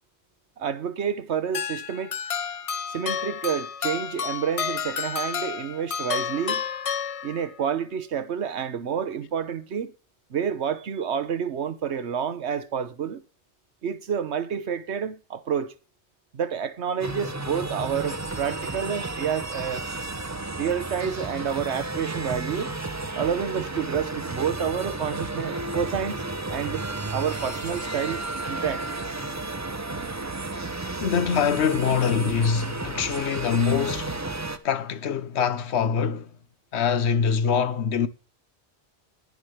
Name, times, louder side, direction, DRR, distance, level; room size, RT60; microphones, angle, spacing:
voice 1, 0.6-2.1 2.9-6.6 7.2-9.9 10.3-13.2 13.8-15.7 16.3-19.9 20.6-22.7 23.2-26.9 27.1-28.8, right 8 dB, 90° right, 1.2 m, -29 dB
sound 1, 1.5-7.7, left 7 dB, 50° left, 0.4 m, -31 dB
sound 2, 17.0-34.6, right 2 dB, 20° right, 0.6 m, -32 dB
voice 2, 31.0-34.3 34.6-36.3 36.7-38.1, left 7 dB, 80° left, 1.1 m, -24 dB
10.5 x 10.0 x 3.2 m
omnidirectional pair, 1.1 m